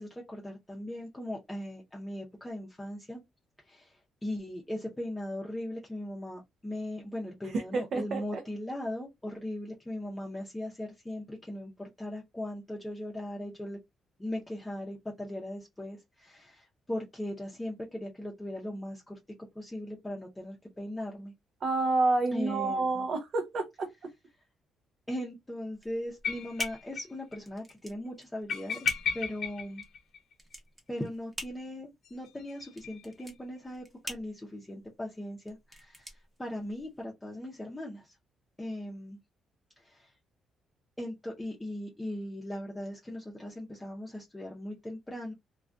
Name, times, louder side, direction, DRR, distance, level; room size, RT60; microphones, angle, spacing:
voice 1, 0.0-3.2 3.6-13.8 14.2-19.2 19.5-21.3 22.3-23.0 25.1-29.8 30.9-38.2 38.6-39.2 39.8-40.1 41.0-45.3, left 1 dB, 15° left, 0.6 m, -39 dB
voice 2, 7.4-8.4 21.6-24.1, right 3 dB, 60° right, 0.5 m, -29 dB
sound 1, 25.7-37.0, equal, 15° right, 0.9 m, -46 dB
sound 2, 26.2-27.1 27.3-27.4 27.7-27.8 28.5-30.5 32.0-33.3, left 6 dB, 70° left, 0.6 m, -35 dB
2.3 x 2.2 x 2.5 m
cardioid pair, 90°, 0 cm